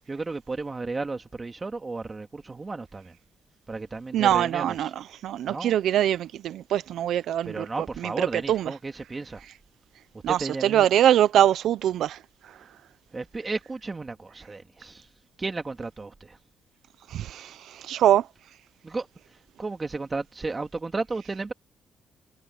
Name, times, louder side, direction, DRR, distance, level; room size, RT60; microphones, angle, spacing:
voice 1, 0.1-3.2 3.7-4.9 5.5-5.8 7.4-9.4 10.3-10.9 13.1-15.1 15.4-16.4 18.8-21.5, right 3 dB, 25° right, 2.1 m, -34 dB
voice 2, 4.1-7.7 8.0-8.7 10.2-12.6 17.1-18.3, right 11 dB, 75° right, 0.7 m, -23 dB
cardioid pair, 90°, 0 cm